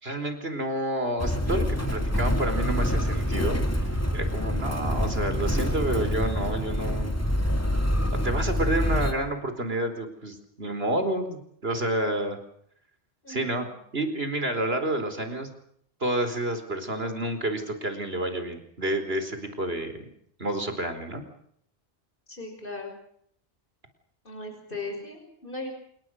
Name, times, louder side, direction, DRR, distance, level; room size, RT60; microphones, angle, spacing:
voice 1, 0.0-7.1 8.2-12.4 13.3-13.6 13.9-15.5 16.0-20.1 20.4-21.2, right 1 dB, 70° right, 8 dB, 4.7 m, -29 dB
Motor vehicle (road), 1.2-9.1, equal, 15° left, 3.0 m, -26 dB
voice 2, 13.2-13.8 22.3-22.9 24.2-25.7, left 2 dB, 55° left, 3 dB, 6.2 m, -38 dB
28.5 x 21.5 x 6.5 m, 0.67 s
omnidirectional pair, 1.1 m